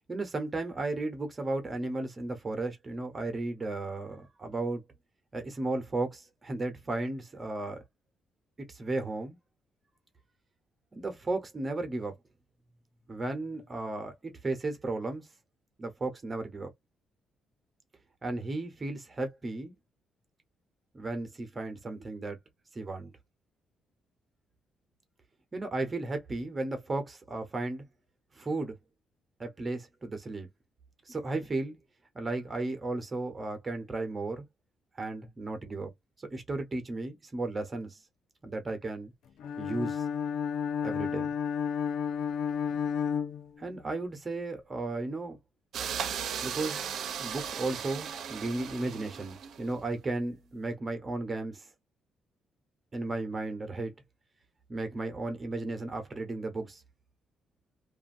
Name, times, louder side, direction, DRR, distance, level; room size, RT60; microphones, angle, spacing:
voice 1, 0.1-4.8 5.3-7.8 8.6-9.4 10.9-12.2 13.1-15.3 15.8-16.7 18.2-19.7 20.9-22.4 22.7-23.1 25.5-27.8 28.3-28.7 29.4-30.5 31.1-31.8 32.1-34.4 34.9-35.9 36.2-38.0 38.4-39.1 39.6-40.1 40.8-41.3 43.6-45.4 46.4-46.8 47.2-51.7 52.9-53.9 54.7-56.8, right 2 dB, 30° right, 0.9 m, -34 dB
Bowed string instrument, 39.4-44.0, left 7 dB, 80° left, 0.6 m, -32 dB
sound 1, 45.7-49.8, right 8 dB, 65° right, 0.6 m, -36 dB
2.6 x 2.5 x 2.6 m
cardioid pair, 90°, 0 cm